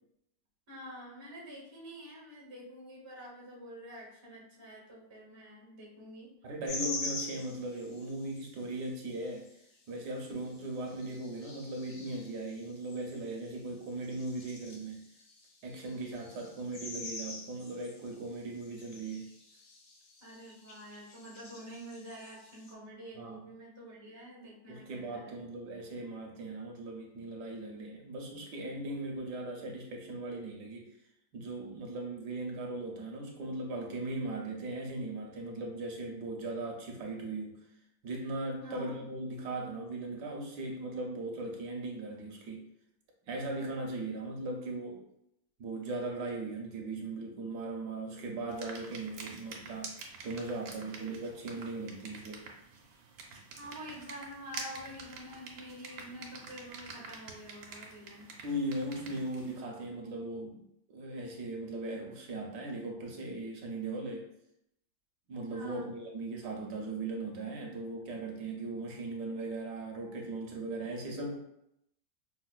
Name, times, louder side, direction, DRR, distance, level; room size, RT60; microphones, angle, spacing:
voice 1, 0.7-6.3 20.2-25.4 38.6-39.0 53.6-58.3 65.5-65.9, equal, 45° right, -4 dB, 0.3 m, -47 dB
voice 2, 6.4-9.5 9.9-15.1 15.6-19.3 23.1-23.5 24.7-30.9 31.3-37.6 38.0-42.6 43.3-45.0 45.6-49.9 50.2-52.4 58.4-60.6 60.9-64.3 65.3-71.3, right 2 dB, 70° right, 0 dB, 1.2 m, -38 dB
sound 1, 6.7-8.5 9.1-9.5 10.1-10.2 10.4-13.6 13.9-22.7, left 3 dB, 70° left, 0.8 m, -45 dB
sound 2, 48.5-59.6, right 4 dB, 90° right, 1.4 m, -47 dB
4.9 x 2.1 x 2.3 m, 0.77 s
omnidirectional pair, 2.0 m